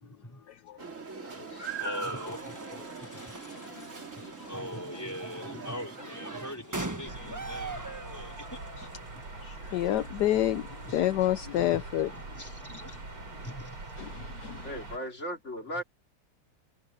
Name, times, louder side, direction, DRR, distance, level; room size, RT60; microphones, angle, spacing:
voice 1, 0.0-0.4 1.8-3.4 4.5-7.8 8.1-8.6 9.0-9.2 10.7-10.9 11.6-11.8 12.3-13.0 13.4-13.8 14.2-14.3, equal, 5° left, 4.0 m, -42 dB
sound 1, 0.8-6.6, right 4 dB, 35° right, 2.8 m, -41 dB
sound 2, 1.7-15.1, right 2 dB, 10° right, 0.9 m, -45 dB
voice 2, 2.8-3.8 4.2-4.3 9.4-12.1 12.4-12.5 14.0-14.7, left 13 dB, 70° left, 1.0 m, -30 dB
sound 3, 7.0-15.0, right 3 dB, 70° right, 6.5 m, -43 dB
voice 3, 14.6-15.8, equal, 30° left, 2.9 m, -36 dB
omnidirectional pair, 2.4 m